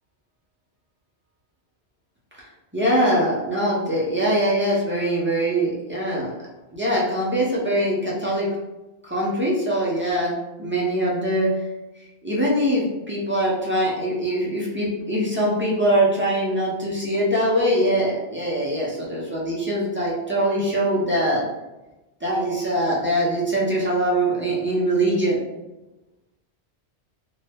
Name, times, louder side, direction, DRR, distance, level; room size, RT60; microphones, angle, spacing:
voice 1, 2.7-6.3 6.7-8.5 9.0-10.3 10.6-11.5 12.2-21.4 22.2-25.4, right 1 dB, 15° right, -6 dB, 0.5 m, -22 dB
2.7 x 2.3 x 3.4 m, 1.0 s
omnidirectional pair, 1.2 m